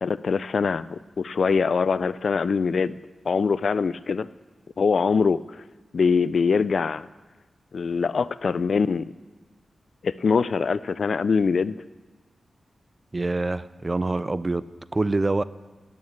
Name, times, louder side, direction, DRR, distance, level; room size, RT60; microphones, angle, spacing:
voice 1, 0.0-3.0 3.3-4.3 4.8-5.4 5.9-7.1 7.7-9.1 10.0-11.7, left 5 dB, 65° left, 17 dB, 0.3 m, -23 dB
voice 2, 13.1-14.6 14.9-15.4, right 2 dB, 30° right, 17 dB, 0.3 m, -25 dB
9.4 x 8.7 x 8.4 m, 1.3 s
wide cardioid pair, 100°, 0 cm